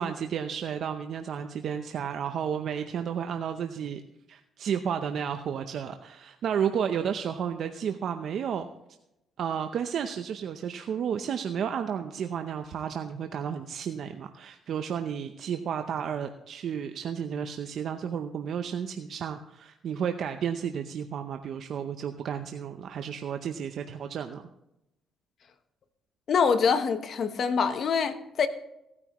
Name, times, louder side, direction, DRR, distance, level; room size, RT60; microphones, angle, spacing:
voice 1, 0.0-4.0 4.3-8.7 9.4-24.4, right 8 dB, 65° right, 7 dB, 0.6 m, -32 dB
voice 2, 26.3-28.5, left 6 dB, 55° left, 10 dB, 1.0 m, -25 dB
17.5 x 9.7 x 3.0 m, 0.88 s
cardioid pair, 90°, 0 cm